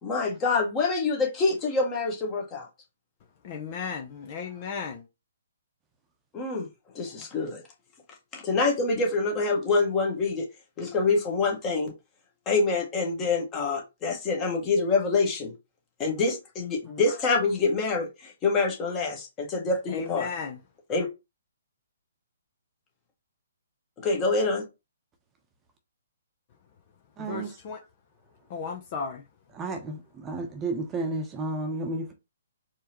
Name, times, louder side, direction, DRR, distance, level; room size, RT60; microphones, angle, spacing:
voice 1, 0.0-2.7 6.3-6.7 6.9-7.6 8.3-10.4 10.8-11.9 12.4-15.5 16.0-20.3 20.9-21.1 24.0-24.6, left 3 dB, 25° left, 1.5 m, -26 dB
voice 2, 3.4-5.1 19.9-20.6 27.2-27.8 28.5-29.2, left 5 dB, 40° left, 0.7 m, -35 dB
voice 3, 27.2-27.6 29.5-32.1, right 2 dB, 20° right, 0.9 m, -32 dB
4.6 x 3.0 x 3.0 m
figure-of-eight pair, 130°, 0 cm